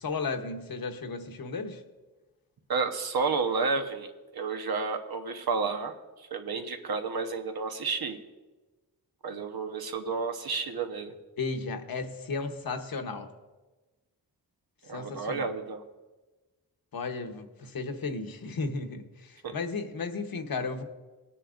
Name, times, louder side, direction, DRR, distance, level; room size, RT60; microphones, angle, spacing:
voice 1, 0.0-1.8 11.4-13.3 14.9-15.5 16.9-20.8, left 4 dB, 65° left, 6 dB, 1.1 m, -34 dB
voice 2, 2.7-8.2 9.2-11.1 14.9-15.8 19.4-19.6, right 4 dB, 75° right, 5 dB, 1.1 m, -31 dB
20.5 x 9.8 x 2.5 m, 1.2 s
wide cardioid pair, 140°, 38 cm